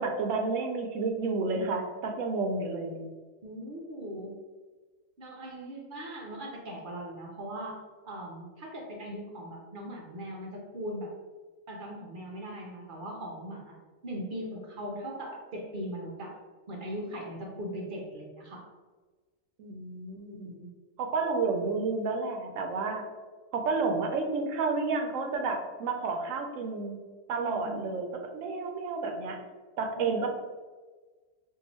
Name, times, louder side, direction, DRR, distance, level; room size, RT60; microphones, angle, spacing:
voice 1, 0.0-3.1 19.6-20.6 21.0-23.0 23.5-27.0 27.3-29.4 29.8-30.3, right 4 dB, 80° right, 4 dB, 0.9 m, -31 dB
voice 2, 3.4-4.4 5.2-11.1 11.7-13.7 14.0-16.4 16.7-18.7 20.3-20.7 27.3-27.9 30.0-30.3, equal, 50° right, -1 dB, 0.7 m, -40 dB
2.7 x 2.6 x 4.1 m, 1.3 s
omnidirectional pair, 1.4 m